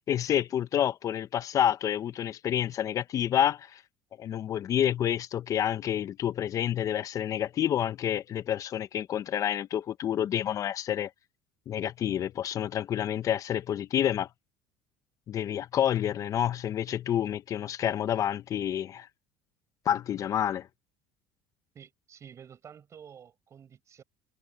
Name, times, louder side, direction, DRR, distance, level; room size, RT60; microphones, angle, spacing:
voice 1, 0.1-3.8 4.2-11.1 11.7-14.3 15.3-19.1 19.8-20.7, left 10 dB, 50° left, 1.0 m, -28 dB
voice 2, 21.7-24.0, right 8 dB, 40° right, 6.5 m, -50 dB
supercardioid pair, 85°, 8 cm